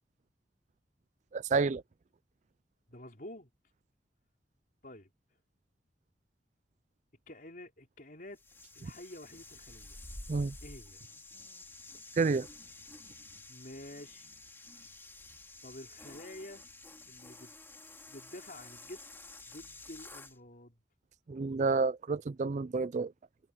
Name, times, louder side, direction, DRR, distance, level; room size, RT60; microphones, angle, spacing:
voice 1, 1.3-1.8 10.3-10.5 12.2-12.5 21.3-23.1, right 4 dB, 40° right, 0.4 m, -29 dB
voice 2, 2.9-3.5 4.8-5.1 7.3-8.4 8.8-10.0 10.6-11.0 13.5-14.3 15.6-16.6 17.1-17.5 18.1-19.1 19.4-20.8, left 1 dB, 50° left, 4.1 m, -49 dB
sound 1, 8.3-20.4, left 2 dB, 15° left, 2.6 m, -51 dB
head